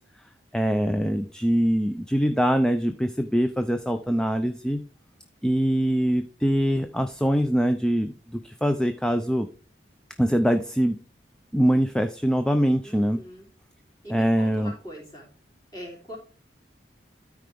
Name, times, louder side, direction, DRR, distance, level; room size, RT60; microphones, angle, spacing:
voice 1, 0.5-4.8 5.4-9.5 10.2-11.0 11.5-13.2 14.1-14.7, equal, 5° left, 7 dB, 0.4 m, -23 dB
voice 2, 12.8-13.5 14.0-15.3 15.7-16.2, equal, 25° left, -3 dB, 3.6 m, -42 dB
13.0 x 4.8 x 3.4 m, 0.37 s
head